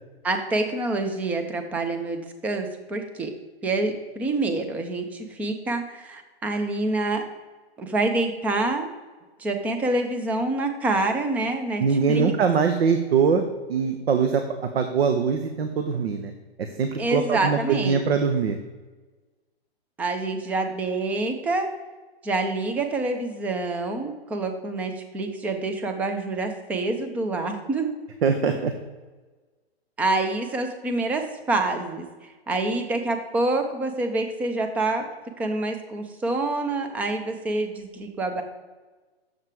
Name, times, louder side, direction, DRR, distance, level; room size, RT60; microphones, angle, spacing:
voice 1, 0.2-3.3 3.6-7.2 7.8-8.9 9.4-11.8 12.1-12.3 17.0-18.0 20.0-21.7 22.2-27.9 30.0-35.1 35.4-38.4, right 2 dB, 5° right, 6 dB, 0.4 m, -27 dB
voice 2, 11.8-13.4 13.7-16.3 16.8-18.6 28.2-28.7, right 6 dB, 70° right, 7 dB, 0.9 m, -22 dB
7.3 x 6.7 x 4.6 m, 1.3 s
hypercardioid pair, 135°, 32 cm